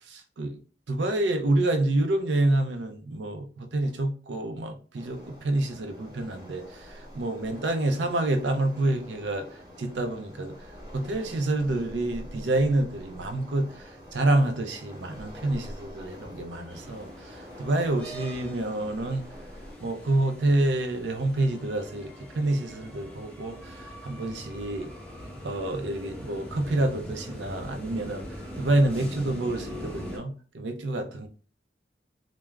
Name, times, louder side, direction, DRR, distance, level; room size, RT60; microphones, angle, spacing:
voice 1, 0.1-0.6 0.9-6.9 7.2-9.5 9.8-10.6 10.9-13.7 14.1-17.1 17.6-19.2 19.8-24.9 25.4-28.2 28.6-31.3, right 2 dB, 85° right, 0.5 m, -27 dB
Waves surf, 4.9-19.7, equal, 20° right, 1.0 m, -46 dB
sound 1, 16.7-30.2, equal, 5° left, 0.7 m, -42 dB
3.2 x 2.0 x 2.3 m
head